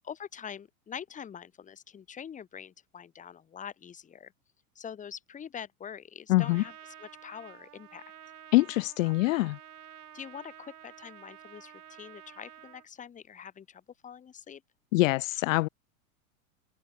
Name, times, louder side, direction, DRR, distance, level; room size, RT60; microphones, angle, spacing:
voice 1, 0.0-4.3 4.7-8.0 9.0-9.1 10.1-14.6, left 8 dB, 15° left, 1.3 m, -44 dB
voice 2, 6.3-6.6 8.5-9.6 14.9-15.7, left 20 dB, 65° left, 0.5 m, -24 dB
Trumpet, 6.4-12.9, right 11 dB, 85° right, 5.0 m, -51 dB
open air
hypercardioid pair, 120°, 44 cm